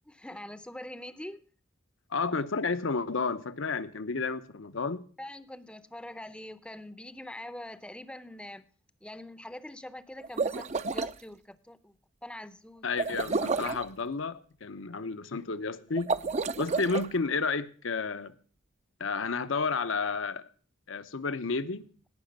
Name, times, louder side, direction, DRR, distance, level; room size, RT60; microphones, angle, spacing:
voice 1, 0.1-1.4 5.2-8.6 9.0-11.9 12.2-12.9, left 1 dB, 5° left, 0.6 m, -44 dB
voice 2, 2.1-5.0 12.8-16.1 16.6-18.3 19.0-20.5 20.9-21.9, left 4 dB, 75° left, 0.8 m, -31 dB
sound 1, 10.2-11.1 13.0-13.9 16.0-17.1, right 4 dB, 35° right, 0.5 m, -30 dB
17.5 x 5.9 x 5.3 m
head